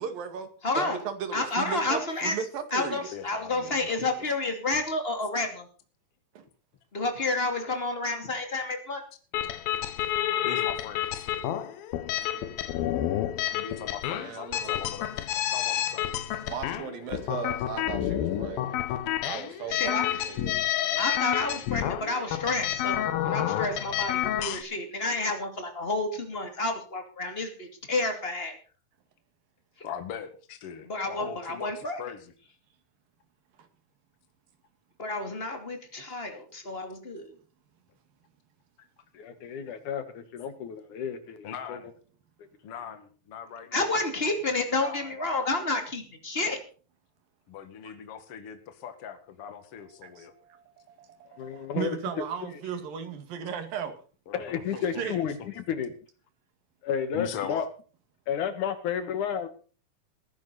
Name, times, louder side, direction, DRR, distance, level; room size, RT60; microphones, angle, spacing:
voice 1, 0.0-0.5 0.8-3.1 6.4-6.5 14.1-14.8 16.4-18.8 19.3-19.9 20.2-20.5 31.2-31.3 47.9-48.0 50.0-54.0 55.0-55.2, right 7 dB, 75° right, 9 dB, 3.7 m, -36 dB
voice 2, 0.6-1.0 1.3-5.7 6.9-9.0 19.7-20.4 21.0-28.6 30.8-32.2 35.0-37.3 43.7-46.6, left 2 dB, 20° left, 5 dB, 2.4 m, -30 dB
voice 3, 3.1-4.0 10.4-11.3 13.5-15.2 15.5-16.1 29.8-32.3 41.4-41.9 42.6-43.9 44.8-45.1 47.5-50.3 54.3-54.4 54.7-55.1 57.1-57.7, left 8 dB, 45° left, 8 dB, 2.5 m, -40 dB
sound 1, 9.3-24.6, left 12 dB, 90° left, 2.9 m, -29 dB
voice 4, 39.1-41.8 51.4-52.2 54.3-55.9 56.8-57.7 58.3-59.5, left 8 dB, 65° left, 10 dB, 2.7 m, -32 dB
20.5 x 10.5 x 4.1 m, 0.39 s
omnidirectional pair, 4.1 m